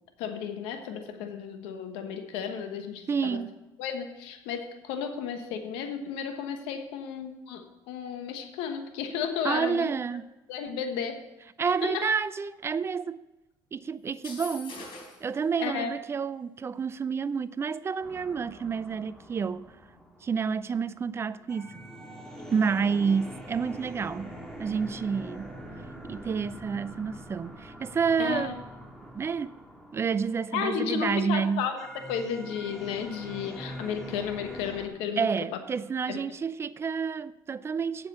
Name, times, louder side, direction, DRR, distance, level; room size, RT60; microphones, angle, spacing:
voice 1, 0.2-3.4 3.8-9.9 10.5-11.2 11.8-12.0 15.6-16.0 28.2-28.6 30.5-35.3 36.1-36.2, left 7 dB, 85° left, 1.2 m, -33 dB
voice 2, 3.1-3.5 9.4-10.2 11.6-13.2 13.7-14.8 15.2-19.6 20.2-21.8 22.5-25.6 26.0-28.6 29.1-29.5 29.9-31.7 35.2-38.1, right 6 dB, 30° right, 0.4 m, -29 dB
sound 1, 14.1-15.3, left 3 dB, 65° left, 4.2 m, -42 dB
sound 2, 18.0-34.9, equal, 5° left, 2.1 m, -44 dB
8.1 x 7.4 x 6.7 m
cardioid pair, 105°, 9 cm